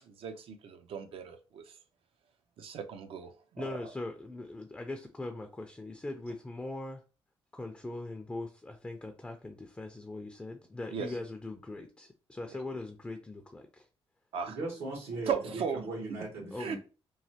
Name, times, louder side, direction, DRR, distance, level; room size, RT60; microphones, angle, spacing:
voice 1, 0.1-1.7 2.6-3.8 10.9-11.1 14.3-14.6 15.3-15.8 16.6-16.8, right 7 dB, 70° right, 0.5 m, -36 dB
voice 2, 3.6-7.0 7.5-13.9 16.5-16.8, left 2 dB, 10° left, 0.4 m, -41 dB
voice 3, 14.5-16.8, right 2 dB, 90° right, 1.3 m, -38 dB
3.1 x 2.2 x 2.7 m
cardioid pair, 95°, 10 cm